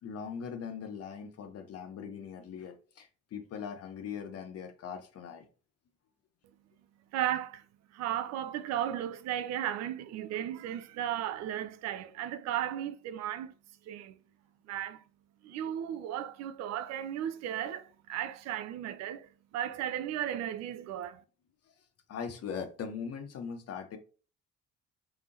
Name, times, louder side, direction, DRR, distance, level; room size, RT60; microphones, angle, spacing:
voice 1, 0.0-5.5 22.1-24.0, left 6 dB, 40° left, 0.9 m, -40 dB
voice 2, 7.1-7.6 7.9-13.5 13.9-14.2 14.7-15.0 15.4-21.2, right 11 dB, 45° right, 0.4 m, -35 dB
3.4 x 3.4 x 2.7 m
figure-of-eight pair, 50°, 36 cm